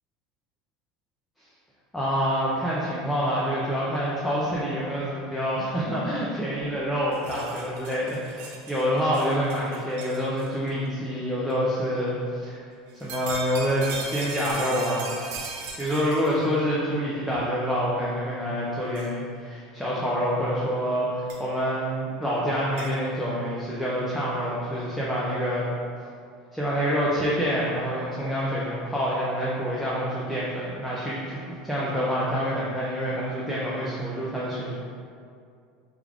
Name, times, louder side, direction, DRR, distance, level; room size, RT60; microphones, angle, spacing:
voice 1, 1.9-12.6 13.0-15.2 15.8-25.7 26.5-34.8, equal, 5° left, -7 dB, 0.3 m, -27 dB
sound 1, 7.1-10.7 11.5-11.6 12.9-16.5 17.3-17.4 19.0-19.1 21.3-21.4 22.8-22.9, right 4 dB, 65° right, 0.5 m, -38 dB
3.4 x 2.4 x 3.3 m, 2.3 s
cardioid pair, 170°, 0 cm